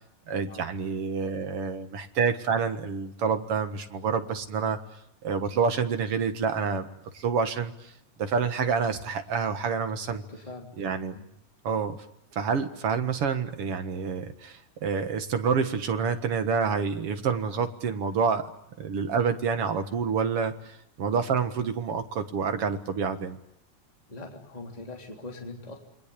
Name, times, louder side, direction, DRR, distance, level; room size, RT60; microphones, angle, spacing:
voice 1, 0.3-4.8 5.2-6.9 7.1-7.9 8.2-10.2 10.8-11.2 11.6-12.0 12.3-18.4 18.8-23.4, right 6 dB, 55° right, 8 dB, 2.4 m, -28 dB
voice 2, 10.1-10.7 11.1-11.3 24.1-25.8, left 2 dB, 15° left, 2 dB, 3.3 m, -42 dB
28.5 x 22.5 x 8.4 m, 0.75 s
omnidirectional pair, 3.3 m